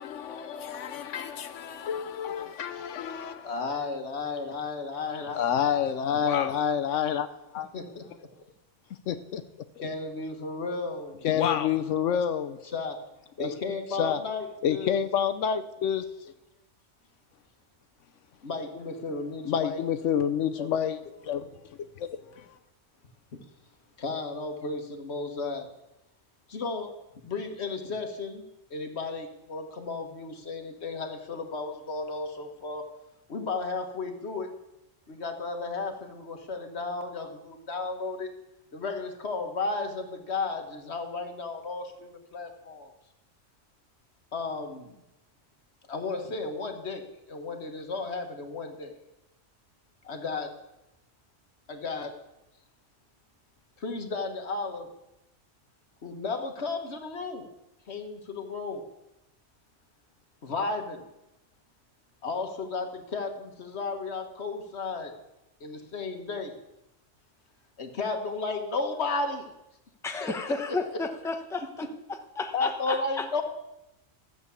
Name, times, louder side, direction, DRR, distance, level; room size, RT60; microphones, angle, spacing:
voice 1, 0.0-3.5 5.3-7.3 7.5-7.7 9.1-9.4 11.2-12.6 13.4-13.5 14.0-14.2 14.6-16.0 19.5-21.5 22.0-22.1 22.4-22.5, left 8 dB, 80° left, 1.0 m, -28 dB
voice 2, 3.4-5.4 5.7-5.9 7.7-8.0 9.8-11.2 12.1-12.2 12.7-13.0 13.4-14.9 18.4-19.8 20.6-20.7 24.0-25.7 26.5-26.9 27.2-28.4 28.7-32.9 33.3-34.5 35.1-38.3 38.7-42.9 44.3-44.9 45.9-48.9 50.0-50.5 51.7-52.2 53.8-54.9 56.0-57.5 57.9-58.8 60.4-61.0 62.2-65.1 65.6-66.5 67.8-69.5 70.2-70.8 72.5-73.4, left 3 dB, 60° left, 1.7 m, -34 dB
voice 3, 70.0-71.8 72.4-73.3, left 3 dB, 5° left, 0.8 m, -32 dB
13.5 x 8.0 x 7.0 m
omnidirectional pair, 1.2 m